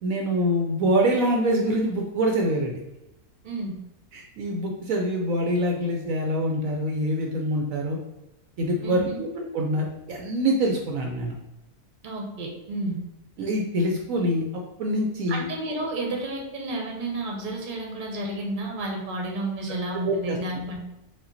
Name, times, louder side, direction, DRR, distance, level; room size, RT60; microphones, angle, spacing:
voice 1, 0.0-2.8 4.1-8.0 8.6-11.3 13.4-14.4 14.8-15.4 20.0-20.4, equal, 70° right, 1 dB, 1.0 m, -25 dB
voice 2, 8.8-9.2 12.0-13.0 15.3-20.8, right 2 dB, 40° right, 0 dB, 1.0 m, -31 dB
5.2 x 2.5 x 3.9 m, 0.93 s
omnidirectional pair, 1.6 m